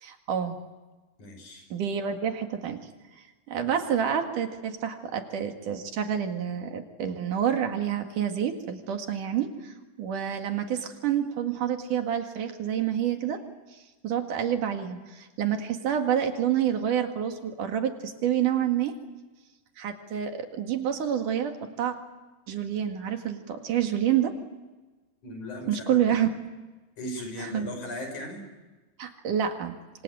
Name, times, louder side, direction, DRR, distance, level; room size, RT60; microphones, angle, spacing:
voice 1, 0.0-0.6 1.7-2.9 3.5-13.4 14.0-19.0 19.8-22.0 22.5-24.4 25.7-26.3 27.5-27.7 29.0-29.8, right 9 dB, 75° right, 5 dB, 3.6 m, -28 dB
voice 2, 1.2-1.7 3.6-3.8 25.2-26.0 27.0-28.4, left 1 dB, 65° left, 5 dB, 7.1 m, -37 dB
27.5 x 25.5 x 7.9 m, 1.2 s
omnidirectional pair, 3.7 m